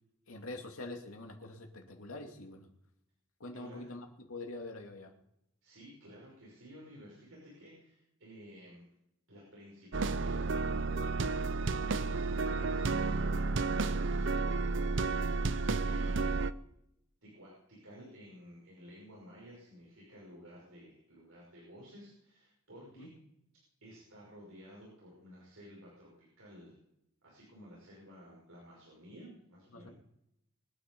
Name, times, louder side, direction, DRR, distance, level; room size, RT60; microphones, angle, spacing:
voice 1, 0.3-2.7 3.4-5.1 23.0-23.1 29.7-29.9, left 2 dB, 85° left, 3 dB, 2.5 m, -45 dB
voice 2, 3.5-3.9 5.6-8.9 9.3-16.6 17.2-23.1 23.8-26.1 26.4-26.7 27.2-29.9, equal, 80° right, -4 dB, 5.7 m, -54 dB
sound 1, 9.9-16.5, right 3 dB, 60° right, 0.6 m, -31 dB
23.5 x 9.3 x 5.4 m, 0.81 s
head